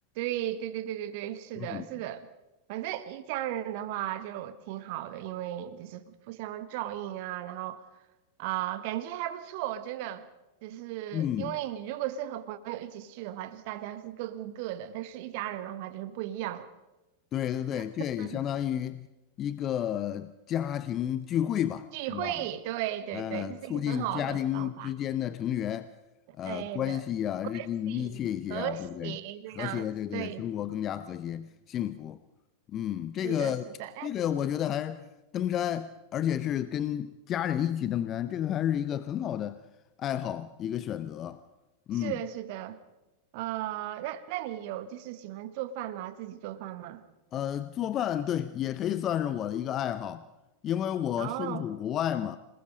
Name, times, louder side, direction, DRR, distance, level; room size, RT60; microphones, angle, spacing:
voice 1, 0.1-2.3 2.7-7.9 8.4-10.3 10.6-16.7 17.7-17.8 18.2-18.4 21.9-24.9 26.4-27.0 27.5-28.2 28.5-30.5 33.2-34.1 41.9-42.8 43.3-47.0 51.2-51.7, right 13 dB, 50° right, 1.4 m, -36 dB
voice 2, 11.1-11.6 17.3-19.1 19.4-22.3 23.1-25.9 26.4-29.1 29.6-32.2 32.7-33.7 34.0-35.1 35.3-39.6 40.0-41.4 41.9-42.2 47.3-50.2 50.6-52.4, left 10 dB, 30° left, 0.7 m, -31 dB
27.0 x 19.5 x 5.2 m
figure-of-eight pair, 90°, 0 cm